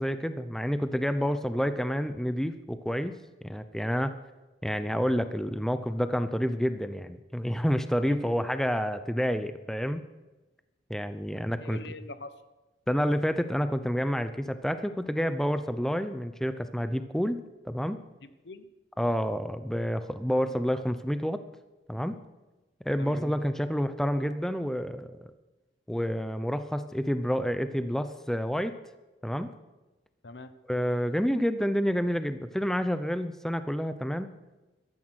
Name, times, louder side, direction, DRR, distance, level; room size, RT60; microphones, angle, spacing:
voice 1, 0.0-3.2 3.4-4.1 4.6-10.0 10.9-11.8 12.9-18.0 19.0-21.4 21.9-22.1 22.8-25.3 25.9-28.7 29.2-29.5 30.7-34.3, equal, 5° left, 11 dB, 0.7 m, -29 dB
voice 2, 8.1-8.6 11.6-12.3 18.2-18.7 23.0-23.2 30.2-30.5, left 2 dB, 80° left, 12 dB, 1.1 m, -44 dB
15.0 x 13.0 x 6.4 m, 1.1 s
head